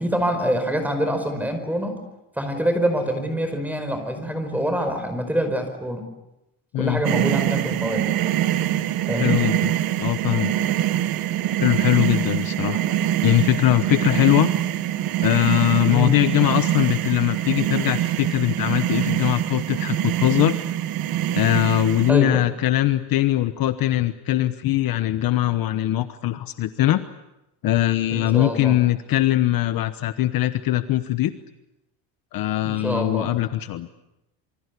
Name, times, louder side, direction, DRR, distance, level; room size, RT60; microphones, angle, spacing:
voice 1, 0.0-2.0 2.4-6.0 6.8-8.1 9.1-9.4 15.9-16.1 22.1-22.5 28.1-28.8 32.6-33.3, equal, 5° right, 7 dB, 5.0 m, -25 dB
sound 1, 7.0-22.1, right 12 dB, 50° right, 1.3 m, -24 dB
voice 2, 9.2-9.7 10.0-10.5 11.6-12.8 13.2-14.5 15.2-20.5 21.3-27.0 27.6-31.3 32.3-33.9, left 14 dB, 50° left, 11 dB, 1.1 m, -21 dB
27.5 x 24.5 x 8.3 m, 0.90 s
cardioid pair, 160°, 46 cm